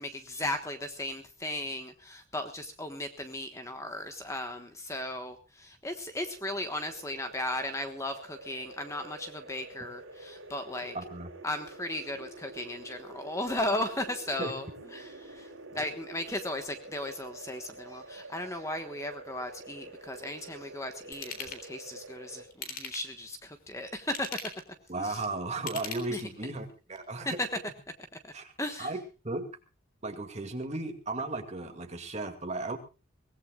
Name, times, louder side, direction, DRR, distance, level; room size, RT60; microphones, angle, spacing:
voice 1, 0.0-11.0 11.4-14.7 14.9-24.4 25.0-25.2 26.1-26.2 27.2-27.5 28.6-28.9, left 1 dB, 15° left, 7 dB, 1.3 m, -36 dB
sound 1, 6.2-22.5, right 2 dB, 70° right, 3.6 m, -48 dB
voice 2, 10.9-11.3 14.4-14.5 15.7-15.9 24.9-27.4 28.3-28.5 28.8-29.0 29.2-29.4 30.0-32.8, right 2 dB, 30° right, 5 dB, 2.2 m, -35 dB
Ratchet pawl / Tools, 21.1-21.6 22.5-23.2 24.0-24.7 25.5-26.4 26.9-27.0, left 4 dB, 45° left, 3.8 m, -40 dB
23.5 x 18.0 x 2.4 m, 0.31 s
head